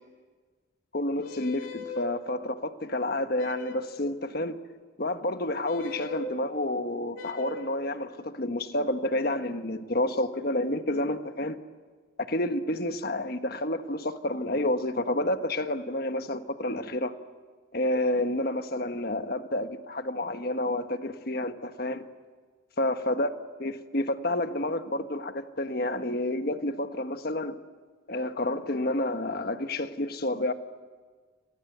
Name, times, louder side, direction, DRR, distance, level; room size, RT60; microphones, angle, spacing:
voice 1, 0.9-4.6 5.0-11.6 12.3-17.1 17.7-22.0 22.8-23.3 23.6-27.6 28.1-30.5, left 1 dB, 50° left, 1.3 m, -29 dB
sound 1, 1.2-2.1 3.4-4.0 5.7-6.3 7.1-7.8, left 2 dB, 80° left, 2.7 m, -39 dB
29.5 x 24.5 x 8.1 m
head